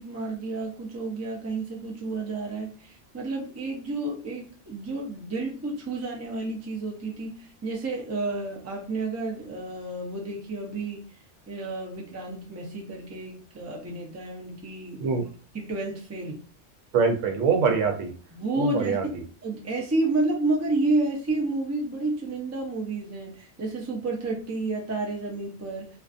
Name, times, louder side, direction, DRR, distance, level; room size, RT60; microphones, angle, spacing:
voice 1, 0.0-11.0 11.5-15.2 15.5-16.4 18.3-19.0 19.4-25.9, right 2 dB, 25° right, -1 dB, 0.4 m, -30 dB
voice 2, 16.9-18.1 18.6-19.2, right 5 dB, 90° right, 4 dB, 1.0 m, -24 dB
2.5 x 2.4 x 2.4 m, 0.39 s
omnidirectional pair, 1.3 m